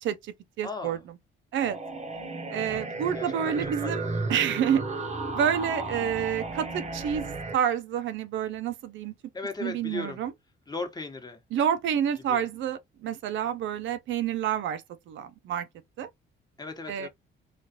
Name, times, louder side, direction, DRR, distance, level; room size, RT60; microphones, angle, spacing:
voice 1, 0.0-1.0 1.5-1.8 2.5-4.0 4.3-4.8 5.3-9.1 9.6-10.3 11.5-15.7 16.0-16.1 16.9-17.1, right 9 dB, 75° right, 0.5 m, -28 dB
voice 2, 0.6-1.0 2.5-2.8 3.1-4.3 9.3-10.2 10.7-11.4 12.3-12.4 16.6-17.1, left 3 dB, 20° left, 1.0 m, -37 dB
sound 1, 1.6-7.6, right 3 dB, 35° right, 0.7 m, -34 dB
3.1 x 2.4 x 2.8 m
cardioid pair, 90°, 20 cm